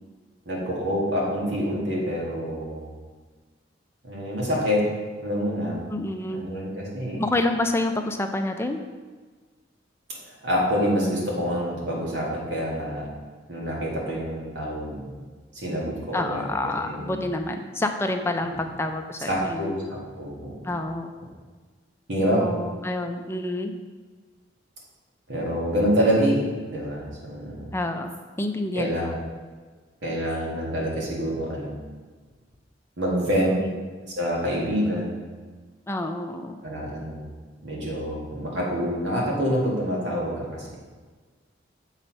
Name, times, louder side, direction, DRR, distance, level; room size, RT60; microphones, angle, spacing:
voice 1, 0.5-3.0 4.0-4.9 5.2-5.8 6.3-7.2 10.2-13.1 13.5-15.2 15.5-16.5 16.8-17.3 19.3-19.8 20.2-20.7 22.1-22.5 25.3-27.7 28.8-29.2 30.0-31.8 33.0-33.6 34.2-35.2 36.6-37.3 37.6-40.7, equal, 75° right, -4 dB, 2.1 m, -26 dB
voice 2, 5.9-6.5 7.2-8.8 16.1-19.8 20.6-21.1 22.4-23.7 27.7-29.1 33.5-33.8 35.9-36.6, left 2 dB, 15° left, 5 dB, 0.5 m, -28 dB
6.9 x 4.1 x 5.4 m, 1.4 s
head